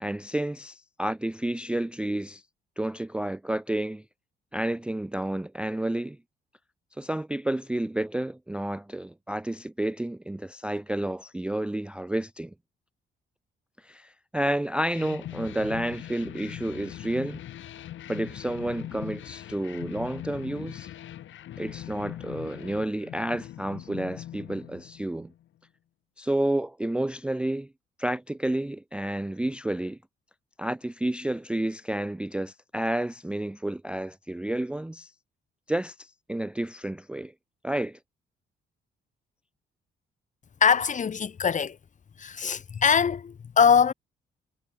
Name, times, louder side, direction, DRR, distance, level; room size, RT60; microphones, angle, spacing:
voice 1, 0.0-2.4 2.8-4.0 4.5-6.2 7.0-12.5 13.8-17.4 18.1-20.9 21.6-25.3 26.2-27.7 28.0-30.0 30.6-35.1 35.7-37.3 37.6-38.0, right 1 dB, 5° right, 0.4 m, -30 dB
sound 1, 14.9-25.4, left 12 dB, 75° left, 3.2 m, -41 dB
voice 2, 40.6-41.8 42.2-43.9, left 6 dB, 40° left, 1.1 m, -22 dB
cardioid pair, 90°, 20 cm